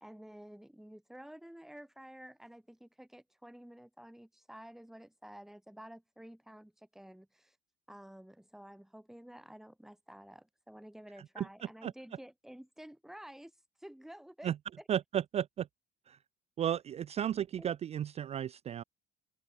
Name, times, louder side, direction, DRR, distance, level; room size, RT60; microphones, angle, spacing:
voice 1, 0.0-7.6 7.9-13.5 13.8-14.9 17.6-17.7, equal, ahead, 1.3 m, -51 dB
voice 2, 14.9-15.7 16.1-16.2 16.6-18.8, right 10 dB, 40° right, 0.4 m, -33 dB
cardioid pair, 110°, 17 cm